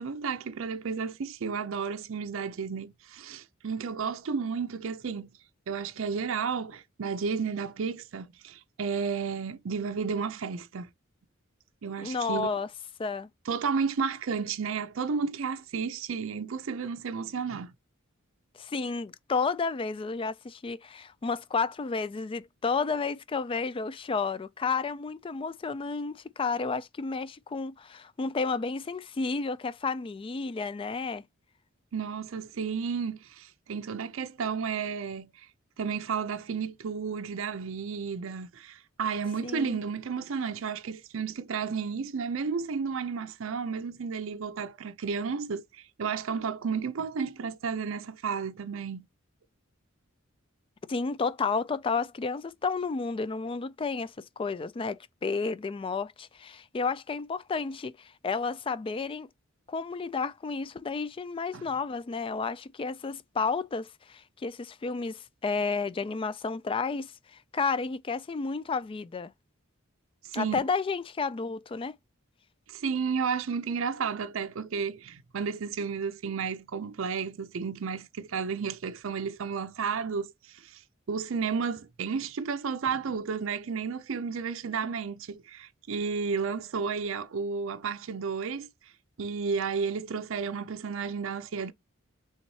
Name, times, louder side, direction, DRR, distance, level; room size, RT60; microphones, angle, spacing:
voice 1, 0.0-5.3 5.7-10.9 11.8-12.5 13.5-17.7 31.9-35.5 35.8-49.1 61.5-61.7 70.2-70.6 72.7-80.8 81.1-88.7 89.2-91.7, right 5 dB, 65° right, 0.5 m, -32 dB
voice 2, 12.0-12.7 13.0-13.3 18.6-31.2 39.4-39.8 50.9-59.3 59.7-69.3 70.3-71.9, left 4 dB, 25° left, 0.3 m, -31 dB
4.0 x 3.5 x 3.1 m
head